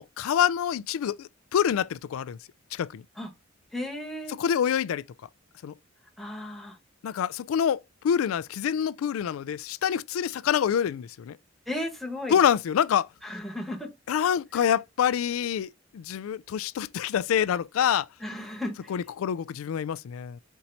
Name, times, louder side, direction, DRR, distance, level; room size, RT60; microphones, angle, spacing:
voice 1, 0.0-2.4 2.7-3.0 4.3-5.0 5.6-5.7 7.0-11.4 12.3-13.1 14.1-18.1 18.9-20.4, left 8 dB, 85° left, 0.3 m, -26 dB
voice 2, 3.7-4.3 6.2-6.8 11.7-12.4 13.2-13.9 14.5-14.7 18.2-18.9, left 1 dB, ahead, 1.3 m, -35 dB
4.5 x 2.8 x 4.0 m
head